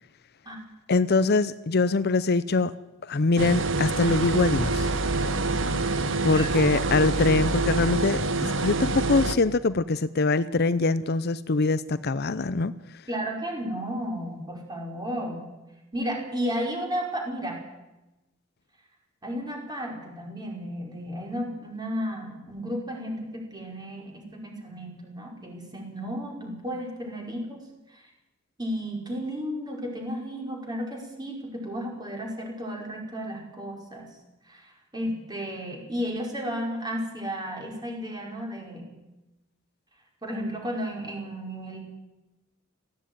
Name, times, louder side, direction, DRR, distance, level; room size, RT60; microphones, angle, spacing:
voice 1, 0.9-2.7 3.1-4.9 6.2-12.7, left 3 dB, 55° left, 15 dB, 0.6 m, -23 dB
sound 1, 3.4-9.4, right 3 dB, 65° right, 1.2 m, -26 dB
voice 2, 6.3-6.6 13.1-15.5 15.9-17.6 19.2-27.6 27.9-28.0 28.6-34.1 34.5-39.0 40.2-41.8, equal, 20° right, 0 dB, 5.1 m, -33 dB
18.0 x 15.5 x 9.4 m, 1.0 s
head